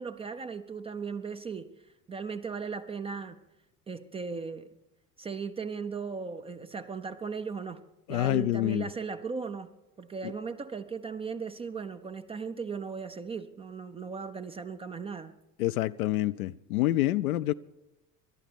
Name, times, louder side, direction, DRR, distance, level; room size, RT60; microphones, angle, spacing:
voice 1, 0.0-1.7 2.1-3.4 3.9-4.7 5.2-7.8 8.1-9.7 10.0-15.3, right 5 dB, 15° right, 0.4 m, -37 dB
voice 2, 8.1-8.9 10.2-10.3 15.6-17.5, left 15 dB, 65° left, 0.5 m, -27 dB
26.5 x 12.0 x 3.4 m
figure-of-eight pair, 65°, 49 cm